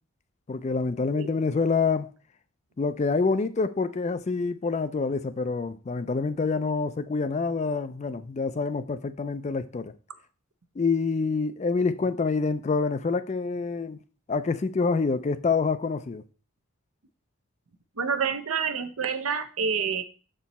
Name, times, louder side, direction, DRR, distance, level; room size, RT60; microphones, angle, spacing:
voice 1, 0.5-2.1 2.8-9.9 10.8-14.0 14.3-16.2, left 4 dB, 30° left, 0.3 m, -27 dB
voice 2, 18.0-20.0, right 6 dB, 80° right, 0.7 m, -28 dB
6.7 x 4.5 x 4.1 m
head